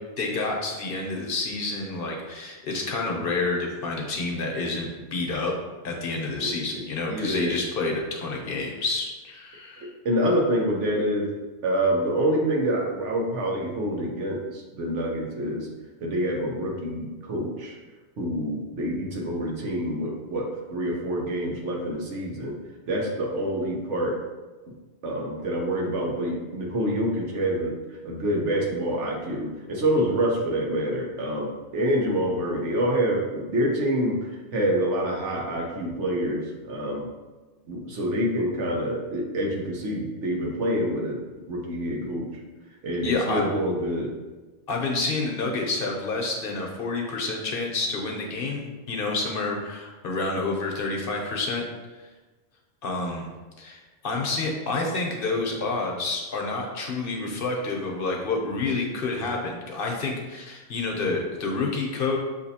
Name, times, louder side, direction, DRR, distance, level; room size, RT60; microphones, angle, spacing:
voice 1, 0.2-5.5 5.8-9.9 42.0-42.1 43.0-43.4 44.7-51.6 52.8-53.3 53.6-62.2, left 3 dB, 55° left, 0 dB, 0.8 m, -29 dB
voice 2, 7.1-7.6 9.8-11.3 11.6-15.7 16.0-17.7 18.2-22.6 22.9-24.2 25.0-34.2 34.5-37.1 37.7-41.2 41.5-42.3 42.8-44.1, equal, 90° right, -1 dB, 1.2 m, -27 dB
7.2 x 2.7 x 2.7 m, 1.2 s
omnidirectional pair, 1.2 m